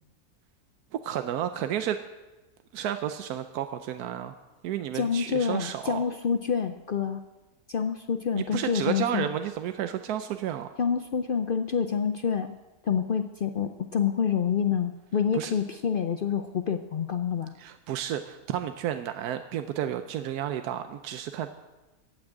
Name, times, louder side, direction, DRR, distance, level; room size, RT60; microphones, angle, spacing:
voice 1, 1.0-2.0 2.7-4.4 4.6-6.0 8.3-10.8 15.3-15.5 17.6-21.5, right 10 dB, 85° right, 8 dB, 1.2 m, -31 dB
voice 2, 4.9-7.2 7.7-9.3 10.8-12.6 12.8-17.5, left 7 dB, 65° left, 7 dB, 0.5 m, -27 dB
15.0 x 6.1 x 8.8 m, 1.1 s
omnidirectional pair, 1.6 m